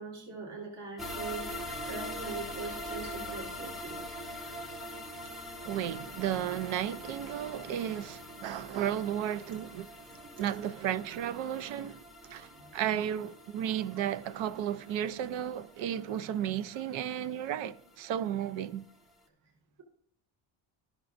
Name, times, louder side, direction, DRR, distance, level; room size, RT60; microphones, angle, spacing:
voice 1, 0.0-4.1 10.1-10.4 12.3-12.7, right 4 dB, 60° right, 1.7 m, -42 dB
sound 1, 1.0-18.1 18.4-18.5 18.9-19.0, left 1 dB, ahead, 0.7 m, -43 dB
voice 2, 5.6-9.9 10.3-12.0 12.3-18.8, right 10 dB, 80° right, 0.6 m, -34 dB
13.0 x 6.0 x 2.5 m
cardioid pair, 150°, 45 cm